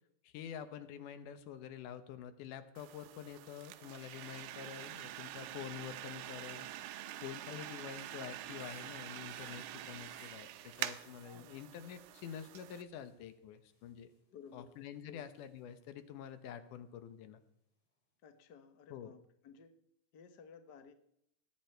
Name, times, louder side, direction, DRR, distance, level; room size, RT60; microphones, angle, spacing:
voice 1, 0.2-6.7 7.2-14.1 14.5-17.4 18.9-19.1, left 9 dB, 85° left, 11 dB, 2.5 m, -47 dB
sound 1, 2.8-12.8, right 13 dB, 90° right, 2.2 m, -46 dB
sound 2, 3.7-16.7 17.0-17.4, left 3 dB, 40° left, 3.1 m, -70 dB
voice 2, 7.5-7.8 9.8-10.1 11.3-11.5 14.3-14.7 15.1-15.2 18.2-19.7 20.1-20.9, left 6 dB, 65° left, 8 dB, 1.0 m, -56 dB
20.0 x 9.3 x 4.5 m, 0.76 s
omnidirectional pair, 3.6 m